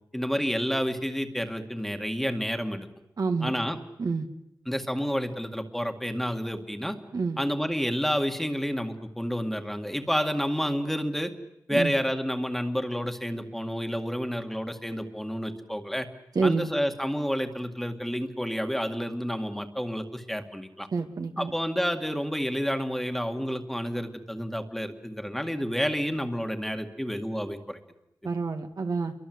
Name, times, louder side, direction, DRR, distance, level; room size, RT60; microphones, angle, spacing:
voice 1, 0.1-2.9 3.4-3.8 4.7-7.0 7.4-11.3 11.7-16.1 16.4-20.9 21.4-27.8, equal, 5° left, 5 dB, 2.2 m, -29 dB
voice 2, 3.2-3.5 4.0-4.3 7.1-7.4 11.7-11.9 16.4-16.7 20.9-21.5 28.2-29.1, right 4 dB, 60° right, 4 dB, 2.1 m, -28 dB
28.5 x 23.5 x 8.0 m, 0.81 s
wide cardioid pair, 90°, 7 cm